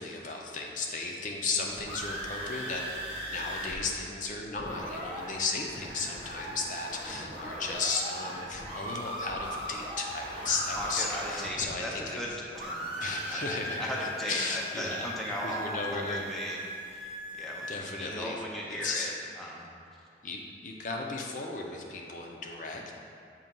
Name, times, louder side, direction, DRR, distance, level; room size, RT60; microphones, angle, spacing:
voice 1, 0.0-2.8 3.3-12.2 13.0-15.1 15.4-16.3 17.7-18.4 18.7-19.1 20.2-23.0, left 3 dB, 45° left, 0 dB, 0.6 m, -35 dB
sound 1, 1.5-3.8 4.0-4.1 4.4-12.3 12.5-17.8, equal, 30° right, 1.0 m, -39 dB
voice 2, 10.7-13.5 13.8-16.6 16.9-19.7, equal, ahead, -4 dB, 0.6 m, -37 dB
7.3 x 2.8 x 5.3 m, 2.6 s
head